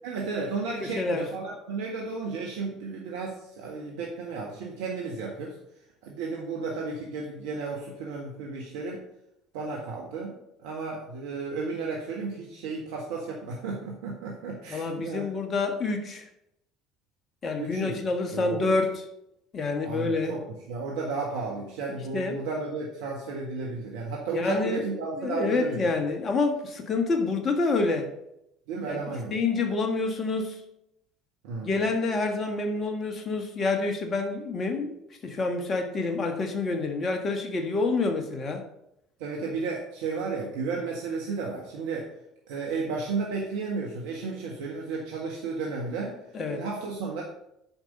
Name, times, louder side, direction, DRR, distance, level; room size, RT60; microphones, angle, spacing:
voice 1, 0.0-5.6 6.0-9.0 9.5-10.3 10.6-15.2 17.6-18.0 18.3-18.8 19.8-25.9 28.7-29.3 31.4-31.8 39.2-42.1 42.5-46.2 46.5-47.2, right 4 dB, 75° right, -1 dB, 1.6 m, -33 dB
voice 2, 0.8-1.3 14.7-16.3 17.4-19.0 19.5-20.4 22.1-22.4 24.3-28.1 28.8-29.0 29.3-30.6 31.6-34.9 35.2-38.6 46.3-46.6, left 3 dB, 40° left, 5 dB, 1.5 m, -28 dB
8.8 x 5.4 x 6.5 m, 0.81 s
hypercardioid pair, 65°, 0 cm